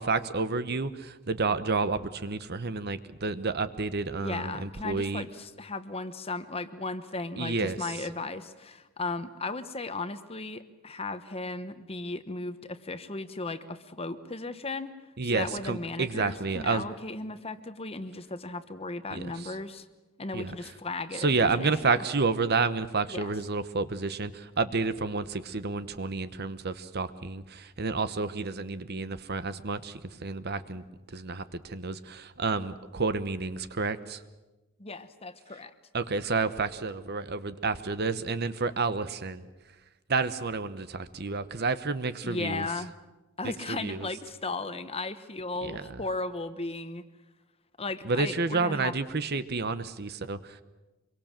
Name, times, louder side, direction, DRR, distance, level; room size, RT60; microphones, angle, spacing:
voice 1, 0.0-5.2 7.4-7.9 15.2-16.8 19.1-19.5 20.3-20.5 21.1-34.2 35.9-39.5 40.1-42.7 43.4-44.1 45.6-46.0 48.0-50.6, right 4 dB, 50° right, 13 dB, 1.0 m, -30 dB
voice 2, 4.2-14.9 15.3-19.8 20.2-22.0 23.1-23.3 34.8-35.7 42.2-42.9 43.4-47.0 47.8-48.9, left 3 dB, 25° left, 11 dB, 1.1 m, -36 dB
25.5 x 23.0 x 7.5 m, 1.1 s
head